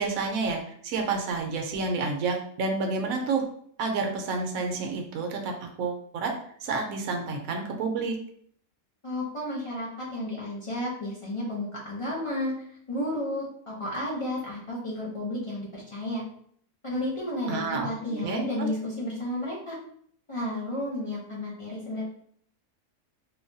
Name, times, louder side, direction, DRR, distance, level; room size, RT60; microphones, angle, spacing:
voice 1, 0.0-3.4 3.8-5.5 5.8-6.3 6.6-8.1 17.5-18.7, right 4 dB, 80° right, 3 dB, 1.0 m, -29 dB
voice 2, 9.0-12.5 12.9-16.2 16.8-19.8 20.3-22.0, left 1 dB, 50° left, -6 dB, 0.4 m, -32 dB
3.2 x 2.2 x 2.6 m, 0.63 s
omnidirectional pair, 1.5 m